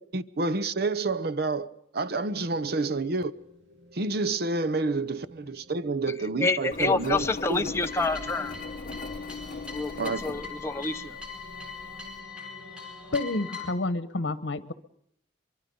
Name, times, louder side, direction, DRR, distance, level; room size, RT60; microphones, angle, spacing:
voice 1, 0.1-1.7 1.9-3.3 3.9-7.7 10.0-10.2, right 3 dB, 55° right, 0.8 m, -29 dB
sound 1, 2.6-13.5, equal, 80° right, 2.2 m, -52 dB
voice 2, 6.4-8.5 9.7-11.2, left 3 dB, 15° left, 0.7 m, -28 dB
Engine, 6.7-12.2, left 3 dB, 50° left, 1.0 m, -40 dB
sound 2, 7.9-13.7, left 5 dB, 5° right, 4.6 m, -41 dB
voice 3, 13.1-14.7, left 2 dB, 80° left, 1.1 m, -29 dB
23.5 x 23.5 x 5.4 m
head